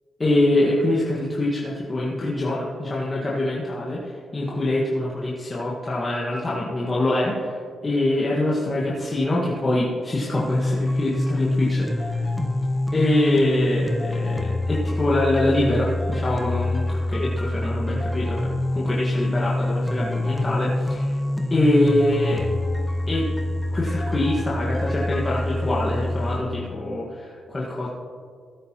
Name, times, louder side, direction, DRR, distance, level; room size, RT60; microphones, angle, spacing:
voice 1, 0.2-12.3 12.9-21.2 21.5-22.5 23.1-23.3 23.7-27.9, left 1 dB, 30° left, -6 dB, 1.7 m, -24 dB
sound 1, 10.4-26.4, left 1 dB, ahead, 1.1 m, -26 dB
16.0 x 9.2 x 3.0 m, 2.1 s
cardioid pair, 85°, 0 cm